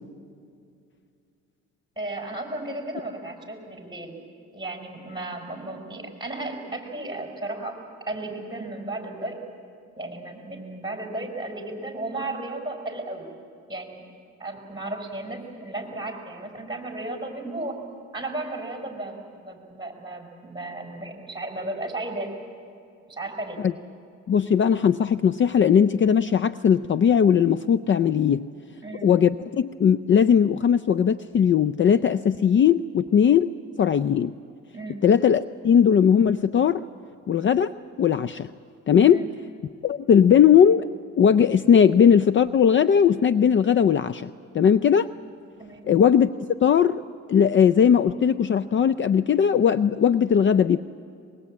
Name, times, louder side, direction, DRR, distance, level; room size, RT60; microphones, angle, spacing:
voice 1, 1.9-4.2 4.5-7.7 8.1-9.4 10.0-13.3 13.7-14.1 14.4-17.8 18.1-22.3 23.1-23.6 28.8-29.1 34.7-35.0 39.1-39.3 45.6-45.9, right 2 dB, 15° right, 2 dB, 5.1 m, -34 dB
voice 2, 24.3-28.5 29.0-33.5 33.8-34.3 35.0-36.8 37.3-38.5 38.9-39.2 39.8-40.9 41.2-44.3 44.5-45.1 45.8-46.3 46.6-47.0 47.3-50.8, left 8 dB, 40° left, 14 dB, 0.5 m, -19 dB
23.0 x 21.5 x 8.6 m, 2.4 s
cardioid pair, 90°, 30 cm